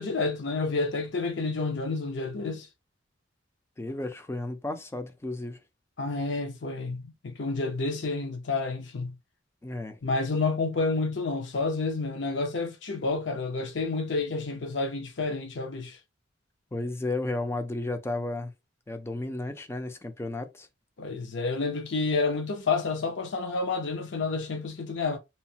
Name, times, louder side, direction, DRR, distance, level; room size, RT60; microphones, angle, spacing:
voice 1, 0.0-2.7 6.0-9.2 10.0-16.0 21.0-25.2, left 3 dB, 65° left, 0.6 m, -29 dB
voice 2, 3.8-5.6 9.6-10.0 16.7-18.5 18.9-20.7, left 2 dB, 15° left, 0.4 m, -33 dB
2.8 x 2.1 x 2.7 m
head